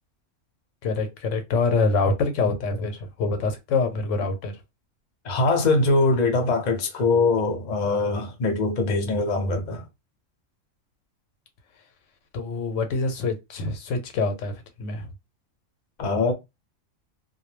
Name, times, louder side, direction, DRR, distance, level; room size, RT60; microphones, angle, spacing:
voice 1, 0.8-4.5 12.3-15.1, left 3 dB, 80° left, 1.0 m, -25 dB
voice 2, 5.2-9.8 16.0-16.3, left 3 dB, 45° left, 0.6 m, -22 dB
2.2 x 2.1 x 3.0 m
omnidirectional pair, 1.3 m